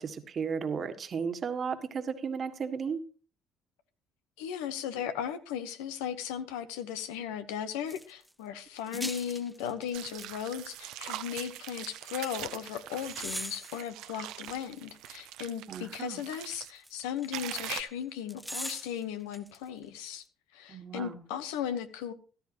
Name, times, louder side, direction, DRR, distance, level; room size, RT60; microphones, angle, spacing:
voice 1, 0.0-3.0 8.9-9.1 15.7-16.2 20.7-21.1, right 6 dB, 45° right, 1.6 m, -34 dB
voice 2, 4.4-20.2 20.5-22.1, left 9 dB, 85° left, 1.1 m, -36 dB
sound 1, 7.9-8.3 8.8-10.3 10.6-10.7 12.0-12.3 13.0-15.3 16.5-17.9 18.3-19.6 19.8-19.9, equal, ahead, 0.8 m, -42 dB
sound 2, 9.9-16.7 17.3-17.8, right 14 dB, 75° right, 0.8 m, -42 dB
15.0 x 12.5 x 3.0 m
supercardioid pair, 70°, 0 cm